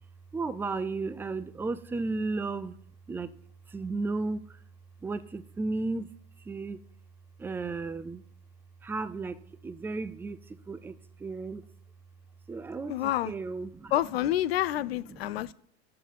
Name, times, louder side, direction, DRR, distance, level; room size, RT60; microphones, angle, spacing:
voice 1, 0.3-2.8 3.1-3.3 3.7-4.6 5.0-6.1 6.4-6.8 7.4-8.2 8.8-11.6 12.5-13.9 15.0-15.5, right 3 dB, 5° right, 0.4 m, -34 dB
voice 2, 12.9-13.3 13.9-15.5, left 13 dB, 65° left, 0.6 m, -28 dB
9.5 x 7.1 x 5.7 m
figure-of-eight pair, 85°, 32 cm